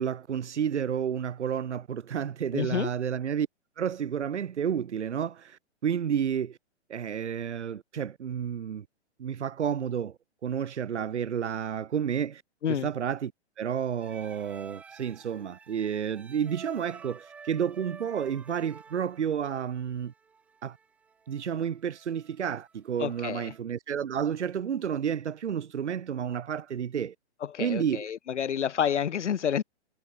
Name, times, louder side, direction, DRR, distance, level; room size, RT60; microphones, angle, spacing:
voice 1, 0.0-3.5 3.8-6.6 6.9-8.8 9.2-12.4 12.7-13.3 13.6-20.1 20.6-20.8 21.3-27.1 27.6-28.1, right 8 dB, 85° right, 0.9 m, -31 dB
voice 2, 2.5-2.9 12.6-12.9 23.0-23.5 27.4-29.6, left 8 dB, 85° left, 0.7 m, -29 dB
sound 1, 14.0-23.6, right 5 dB, 5° right, 0.4 m, -51 dB
hypercardioid pair, 135°, 34 cm